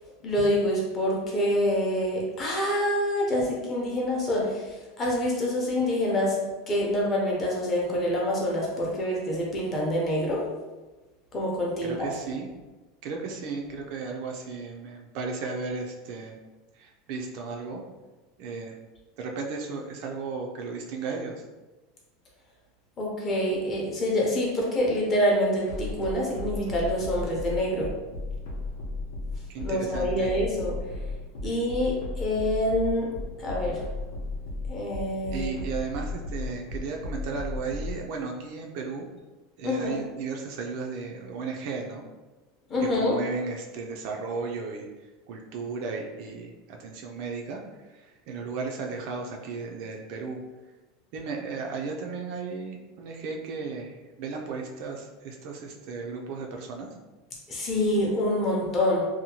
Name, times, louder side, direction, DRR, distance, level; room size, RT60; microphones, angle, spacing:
voice 1, 0.2-6.4 6.7-10.4 11.3-12.1 23.0-27.9 29.6-30.8 31.4-33.1 33.4-33.8 34.7-35.5 39.6-40.0 42.7-43.1 57.5-59.1, left 1 dB, 20° left, -3 dB, 0.6 m, -26 dB
voice 2, 11.8-12.5 13.0-16.4 16.7-17.8 18.4-18.8 19.2-21.4 29.5-30.3 35.3-39.1 39.6-42.0 42.9-44.9 45.3-50.4 51.1-56.9, right 4 dB, 45° right, 1 dB, 0.3 m, -35 dB
sound 1, 25.7-37.9, left 2 dB, 70° left, 0.7 m, -34 dB
2.7 x 2.1 x 2.8 m, 1.2 s
supercardioid pair, 170°, 0 cm